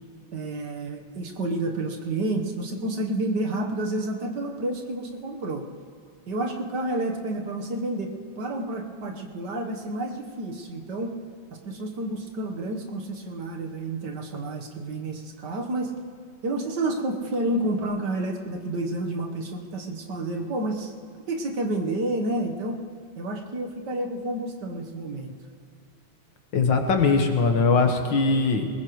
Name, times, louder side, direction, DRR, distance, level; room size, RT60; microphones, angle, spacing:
voice 1, 0.3-5.7 6.3-11.1 11.5-15.9 16.4-20.9 21.3-22.8 23.2-25.3, right 2 dB, 65° right, 2 dB, 1.8 m, -30 dB
voice 2, 26.5-28.7, left 4 dB, 75° left, 4 dB, 2.0 m, -21 dB
21.0 x 20.5 x 3.2 m, 2.4 s
omnidirectional pair, 2.1 m